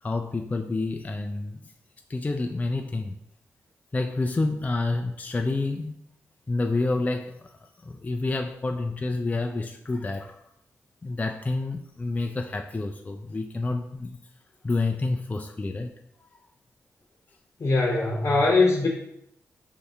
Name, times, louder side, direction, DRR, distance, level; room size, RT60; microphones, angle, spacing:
voice 1, 0.0-1.7 2.1-3.2 3.9-5.9 6.5-10.4 11.0-14.2 14.6-15.9, left 3 dB, 25° left, 4 dB, 0.4 m, -29 dB
voice 2, 17.6-18.9, left 3 dB, 55° left, -2 dB, 0.8 m, -21 dB
4.6 x 2.7 x 3.5 m, 0.75 s
supercardioid pair, 45°, 6 cm